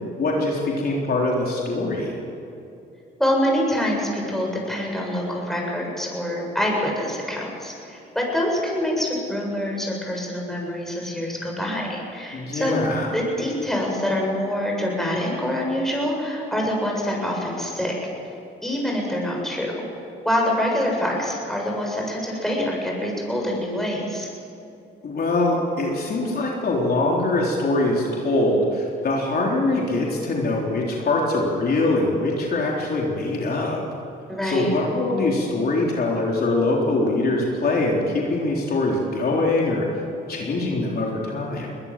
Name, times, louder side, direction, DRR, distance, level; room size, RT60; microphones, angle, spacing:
voice 1, 0.2-2.1 12.3-13.1 25.0-33.8 34.4-39.9 40.3-41.7, left 2 dB, 50° left, -2 dB, 3.8 m, -23 dB
voice 2, 3.2-12.8 13.1-17.9 18.6-19.7 20.2-24.3 34.3-34.7, left 1 dB, ahead, -2 dB, 7.8 m, -25 dB
22.0 x 20.0 x 7.6 m, 2.7 s
cardioid pair, 90°, 20 cm